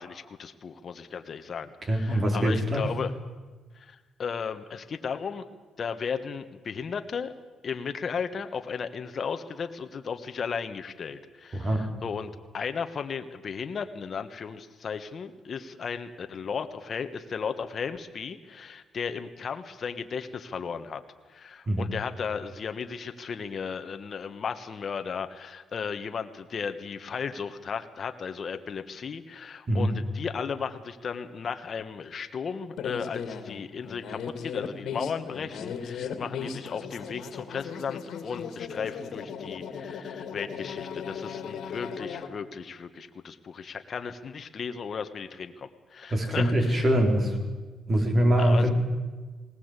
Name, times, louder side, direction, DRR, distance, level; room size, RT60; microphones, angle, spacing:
voice 1, 0.0-3.1 3.7-5.5 5.8-7.3 7.6-21.0 21.3-46.9 48.4-48.7, left 6 dB, 50° left, 8 dB, 1.4 m, -35 dB
voice 2, 1.9-2.9 11.5-11.9 21.7-21.9 29.7-29.9 46.1-47.4 47.9-48.7, equal, 35° right, 3 dB, 4.4 m, -23 dB
sound 1, 32.8-42.3, left 6 dB, 75° left, 2.3 m, -37 dB
19.0 x 19.0 x 8.3 m, 1.3 s
cardioid pair, 90°, 0 cm